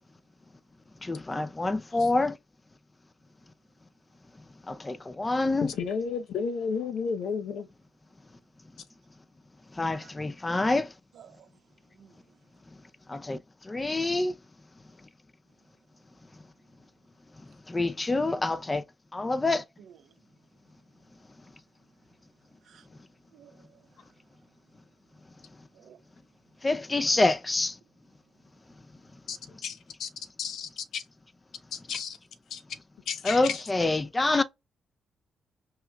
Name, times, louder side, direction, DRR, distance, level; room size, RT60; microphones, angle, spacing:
voice 1, 1.0-2.3 4.7-5.7 9.8-10.9 13.1-13.4 13.7-14.3 17.7-18.8 19.1-19.6 26.6-27.7 33.2-34.4, left 2 dB, 25° left, 0.5 m, -26 dB
voice 2, 5.8-7.7 29.3-29.4 29.6-30.1 30.4-31.0 31.7-32.2 32.5-32.6 33.1-33.6, left 6 dB, 80° left, 0.8 m, -32 dB
voice 3, 11.1-11.5 12.0-12.1 19.8-19.9 22.6-22.8 23.3-23.8 25.7-26.0, right 8 dB, 80° right, 1.0 m, -53 dB
5.8 x 3.0 x 2.3 m
cardioid pair, 80°, 0 cm